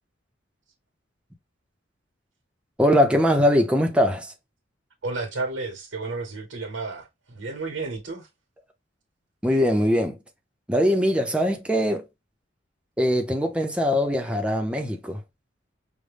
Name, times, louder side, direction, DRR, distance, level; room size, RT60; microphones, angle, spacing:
voice 1, 2.8-4.3 9.4-10.2 10.7-12.0 13.0-15.2, equal, 5° right, 0.7 m, -21 dB
voice 2, 5.0-8.3, right 3 dB, 80° right, 1.0 m, -32 dB
5.2 x 2.2 x 3.3 m
head